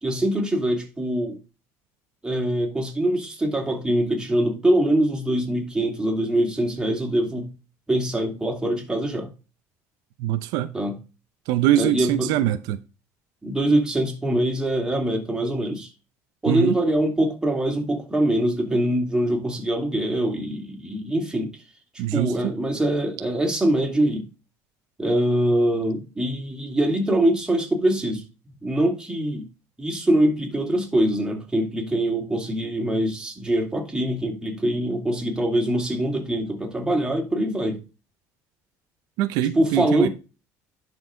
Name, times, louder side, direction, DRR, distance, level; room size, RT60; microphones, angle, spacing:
voice 1, 0.0-1.4 2.2-7.5 7.9-9.3 10.7-11.0 11.7-12.3 13.4-15.9 16.4-21.5 22.1-24.3 25.0-28.2 28.6-29.5 29.8-37.8 39.5-40.1, right 1 dB, 10° right, 2.8 m, -23 dB
voice 2, 10.2-10.7 11.5-12.8 16.5-16.8 22.0-22.5 39.2-40.1, right 12 dB, 80° right, 0.7 m, -23 dB
11.0 x 4.8 x 3.8 m
cardioid pair, 130°, 7 cm